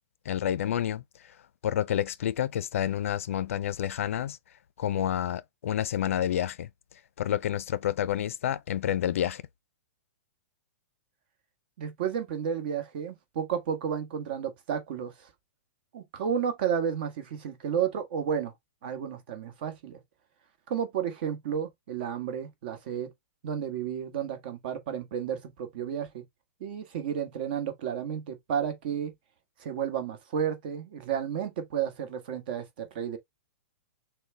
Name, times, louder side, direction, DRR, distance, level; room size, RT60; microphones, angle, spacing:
voice 1, 0.3-1.0 1.6-4.4 4.8-6.7 7.2-9.4, left 10 dB, 60° left, 0.4 m, -29 dB
voice 2, 11.8-15.3 15.9-18.5 18.8-20.0 20.7-23.1 23.4-26.2 26.6-29.1 29.6-33.2, right 8 dB, 40° right, 1.3 m, -32 dB
6.2 x 2.2 x 3.3 m
hypercardioid pair, 165°, 8 cm